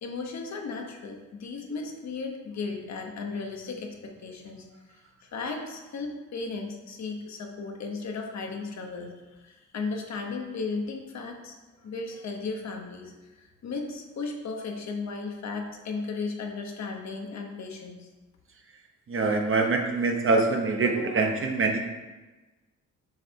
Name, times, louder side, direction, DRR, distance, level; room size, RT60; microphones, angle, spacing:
voice 1, 0.0-4.6 5.2-9.1 9.4-11.5 11.8-13.1 13.6-18.1, left 4 dB, 60° left, 2 dB, 1.0 m, -35 dB
voice 2, 19.1-21.8, right 3 dB, 40° right, 2 dB, 0.9 m, -24 dB
6.5 x 3.4 x 4.3 m, 1.2 s
cardioid pair, 95°, 32 cm